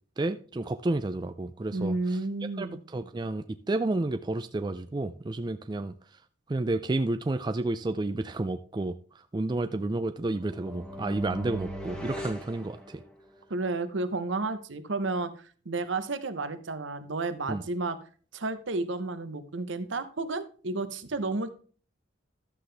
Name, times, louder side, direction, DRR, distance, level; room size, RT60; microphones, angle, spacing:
voice 1, 0.2-2.0 2.6-5.9 6.5-8.9 9.3-13.0 17.5-17.6, right 2 dB, 20° right, 0.3 m, -30 dB
voice 2, 1.7-2.8 13.5-18.0 18.3-21.5, right 3 dB, 75° right, 0.9 m, -32 dB
sound 1, 10.4-13.4, equal, 5° left, 1.2 m, -39 dB
12.0 x 7.7 x 3.3 m
head